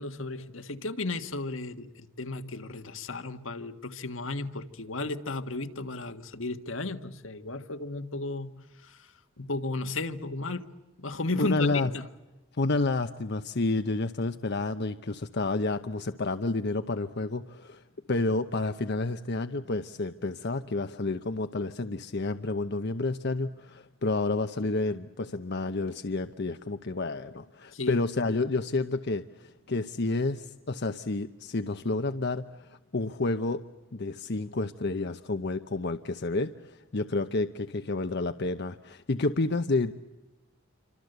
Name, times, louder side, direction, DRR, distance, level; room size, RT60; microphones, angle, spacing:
voice 1, 0.0-10.6 11.0-12.1 27.7-28.0, left 3 dB, 80° left, 9 dB, 1.6 m, -34 dB
voice 2, 11.4-11.9 12.6-17.8 18.1-33.6 33.9-39.9, left 2 dB, 55° left, 9 dB, 0.9 m, -30 dB
28.0 x 25.5 x 8.0 m, 1.1 s
head